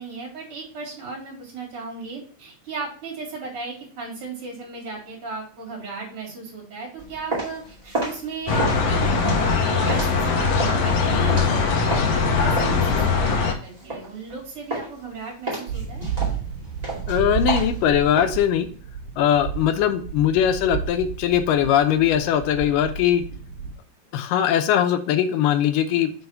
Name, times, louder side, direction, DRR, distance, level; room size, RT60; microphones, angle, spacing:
voice 1, 0.0-16.1, right 3 dB, 40° right, -3 dB, 3.7 m, -36 dB
sound 1, 7.0-12.2 12.6-14.4 14.7-15.1 15.5-18.3, right 2 dB, 15° right, 2.0 m, -31 dB
sound 2, 8.5-13.5, left 4 dB, 65° left, 2.0 m, -21 dB
sound 3, 15.7-23.7, right 7 dB, 85° right, 2.9 m, -32 dB
voice 2, 17.1-18.7 19.2-23.2 24.1-26.1, left 10 dB, 80° left, 8 dB, 2.4 m, -20 dB
6.3 x 4.0 x 5.7 m, 0.43 s
omnidirectional pair, 3.9 m